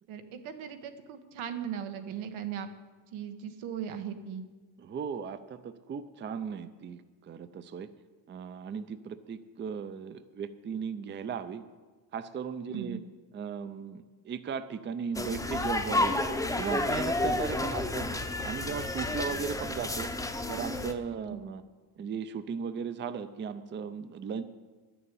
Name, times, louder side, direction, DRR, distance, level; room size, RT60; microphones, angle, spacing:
voice 1, 0.1-2.7 3.1-4.5 12.7-13.0 21.3-21.4, right 8 dB, 90° right, 8 dB, 1.3 m, -38 dB
voice 2, 4.8-7.9 8.3-11.6 12.1-13.0 13.3-16.1 16.6-18.1 18.4-20.1 20.5-21.6 22.0-24.4, right 6 dB, 25° right, 12 dB, 0.5 m, -37 dB
sound 1, 15.1-20.9, left 2 dB, 5° left, 0.7 m, -31 dB
10.5 x 7.0 x 8.9 m, 1.3 s
cardioid pair, 135°, 47 cm